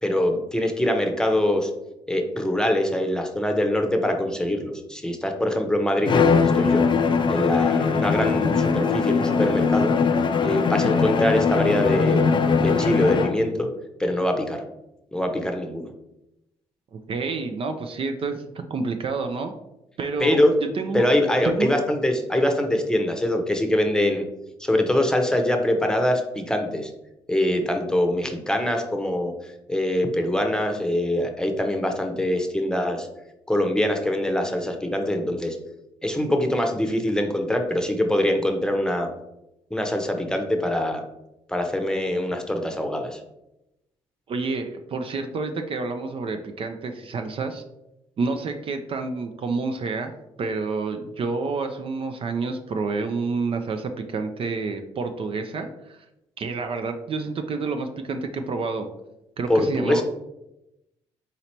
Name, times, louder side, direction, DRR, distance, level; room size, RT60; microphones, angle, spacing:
voice 1, 0.0-1.7 2.1-6.8 7.3-9.9 10.4-12.3 12.5-13.7 14.0-14.6 15.1-15.9 20.2-20.5 20.9-24.3 24.6-26.9 27.3-29.3 29.7-33.1 33.5-35.6 36.0-39.1 39.7-41.0 41.5-43.2 59.5-60.0, left 1 dB, 5° left, 4 dB, 0.8 m, -23 dB
Bowed string instrument, 6.1-13.5, left 5 dB, 40° left, 0.5 m, -21 dB
voice 2, 16.9-19.5 20.0-21.1 21.4-21.8 44.3-47.6 48.2-50.1 50.4-56.1 56.4-58.9 59.4-60.0, right 4 dB, 50° right, 6 dB, 0.5 m, -29 dB
4.0 x 2.9 x 4.4 m, 0.89 s
supercardioid pair, 60°, 12 cm